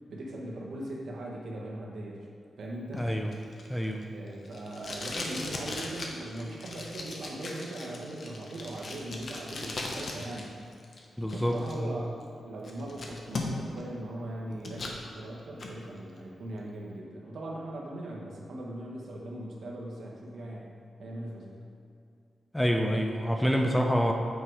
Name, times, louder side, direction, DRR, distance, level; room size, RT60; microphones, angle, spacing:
voice 1, 0.1-2.3 2.6-3.1 4.1-10.6 11.3-20.7 21.0-21.6, right 1 dB, 65° right, -2 dB, 1.4 m, -39 dB
Packing tape duct tape, 2.9-10.4 10.7-11.7 12.2-12.3 12.6-13.8 14.2-15.0 15.4-15.7, left 2 dB, 45° left, 0.9 m, -38 dB
voice 2, 3.0-3.3 3.7-4.0 11.2-12.0 22.5-24.1, equal, 5° left, 2 dB, 0.5 m, -27 dB
8.7 x 4.7 x 4.8 m, 2.5 s
wide cardioid pair, 165°, 0 cm